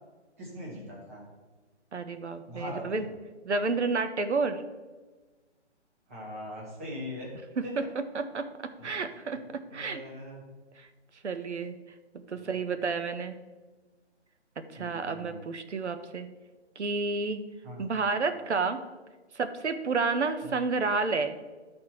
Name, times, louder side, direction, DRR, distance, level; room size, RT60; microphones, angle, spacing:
voice 1, 0.4-1.2 2.5-3.1 6.1-7.3 7.6-7.7 8.8-8.9 9.7-10.4 12.3-12.6 14.7-15.4 17.6-17.8 20.4-20.5, left 1 dB, 10° right, -4 dB, 1.1 m, -41 dB
voice 2, 1.9-3.0 3.4-4.6 7.8-7.9 8.1-8.5 8.8-10.0 10.8-10.9 11.2-11.8 12.3-13.4 14.7-16.3 16.8-17.4 17.8-18.8 19.3-21.4, right 4 dB, 70° right, 9 dB, 1.0 m, -30 dB
12.5 x 4.4 x 4.3 m, 1.3 s
hypercardioid pair, 170°, 35 cm